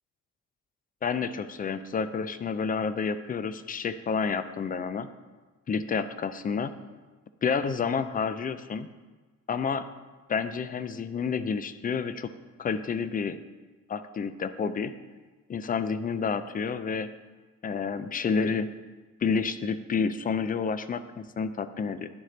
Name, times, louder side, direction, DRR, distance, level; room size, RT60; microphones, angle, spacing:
voice 1, 1.0-5.1 5.7-6.7 7.4-8.9 9.5-9.8 10.3-12.3 12.6-13.4 13.9-14.9 15.5-17.1 17.6-18.7 19.2-22.1, left 5 dB, 30° left, 12 dB, 0.4 m, -29 dB
10.5 x 3.8 x 3.2 m, 1.3 s
cardioid pair, 90°, 30 cm